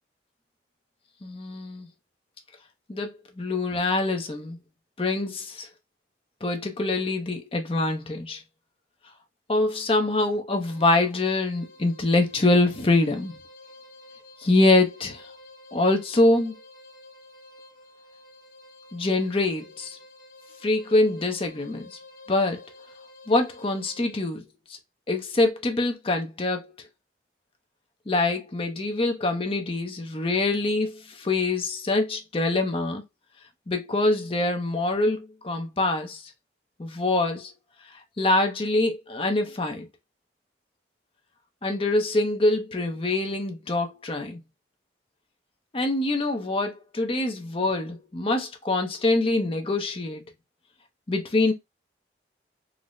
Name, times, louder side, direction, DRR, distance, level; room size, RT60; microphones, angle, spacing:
voice 1, 1.2-1.9 2.9-4.6 5.0-5.7 6.4-8.4 9.5-13.3 14.4-15.3 15.7-16.5 18.9-20.0 20.6-21.9 22.3-22.6 23.3-24.4 25.1-26.7 28.1-33.0 33.7-36.2 36.8-37.5 38.2-39.9 41.6-44.4 45.7-50.2 51.1-51.5, left 2 dB, 30° left, 0.6 m, -24 dB
sound 1, 10.6-24.3, left 2 dB, 45° left, 1.1 m, -50 dB
3.8 x 2.0 x 3.0 m
head